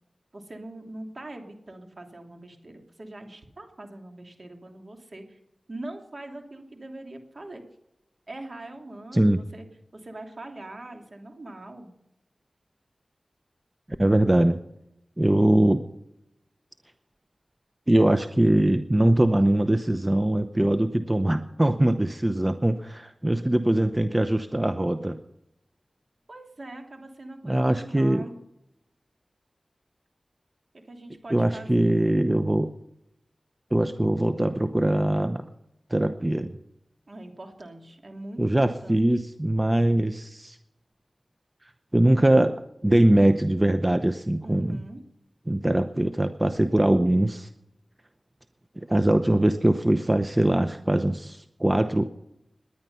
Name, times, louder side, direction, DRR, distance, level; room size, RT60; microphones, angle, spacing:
voice 1, 0.3-5.4 5.7-7.6 8.3-9.7 9.9-11.9 26.3-28.4 30.8-32.0 37.1-39.1 44.4-45.0, right 1 dB, 55° right, 4 dB, 2.9 m, -42 dB
voice 2, 14.0-14.6 15.2-15.8 17.9-25.2 27.4-28.2 31.3-32.7 33.7-35.4 35.9-36.6 38.4-40.6 41.9-42.5 42.8-44.8 45.5-47.5 48.8-52.0, right 1 dB, 20° right, 9 dB, 0.8 m, -22 dB
19.5 x 10.5 x 5.6 m, 0.84 s
wide cardioid pair, 50°, 0 cm